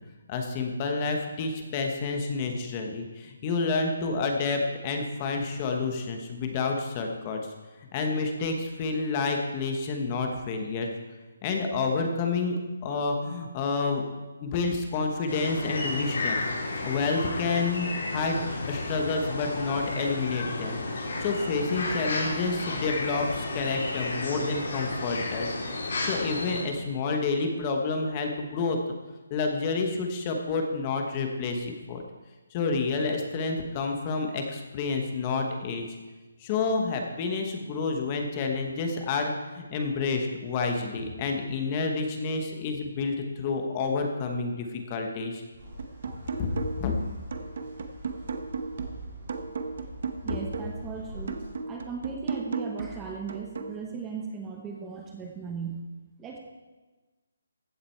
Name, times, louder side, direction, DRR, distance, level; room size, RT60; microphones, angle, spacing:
voice 1, 0.3-7.4 7.9-10.9 11.4-12.6 12.8-14.0 14.4-16.5 16.8-25.5 26.0-28.8 29.3-32.0 32.5-35.9 36.4-45.4 46.4-46.9, left 4 dB, 20° left, 3 dB, 1.1 m, -29 dB
sound 1, 15.3-26.6, left 2 dB, 55° left, 3.7 m, -32 dB
sound 2, 45.6-51.5, equal, 30° right, 4.5 m, -44 dB
sound 3, 45.8-47.0 47.3-50.8 51.3-53.8, right 4 dB, 50° right, 0.9 m, -35 dB
voice 2, 50.2-51.4 51.7-55.8 56.2-56.4, right 5 dB, 10° right, 0 dB, 0.9 m, -37 dB
15.0 x 7.5 x 4.5 m, 1.2 s
hypercardioid pair, 170°, 0 cm